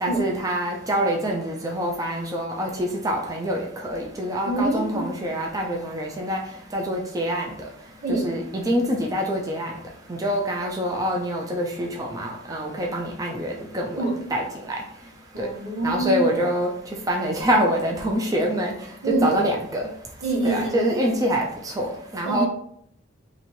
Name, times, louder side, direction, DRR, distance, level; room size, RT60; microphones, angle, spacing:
voice 1, 0.0-6.4 6.7-7.5 8.1-9.7 10.2-14.0 14.3-14.4 15.4-15.5 15.8-16.7 17.1-18.7 19.1-19.9 20.4-22.5, equal, 20° right, 0 dB, 0.5 m, -25 dB
voice 2, 4.4-5.0 8.0-8.4 14.0-14.2 15.3-16.2 19.0-19.4 20.2-20.9 22.2-22.5, right 2 dB, 85° right, -4 dB, 1.4 m, -25 dB
2.9 x 2.7 x 4.2 m, 0.67 s
head